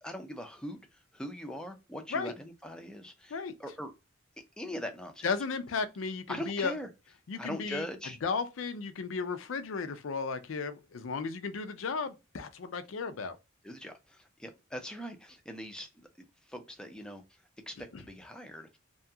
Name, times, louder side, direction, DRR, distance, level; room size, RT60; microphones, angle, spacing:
voice 1, 0.0-3.9 4.6-5.3 6.3-6.9 7.4-8.2 13.6-15.9 16.4-17.4 17.7-18.8, equal, 5° left, 0.4 m, -41 dB
voice 2, 5.2-6.7 7.3-7.8 8.2-13.4 17.9-18.0, left 4 dB, 80° left, 0.5 m, -34 dB
2.8 x 2.3 x 2.7 m
head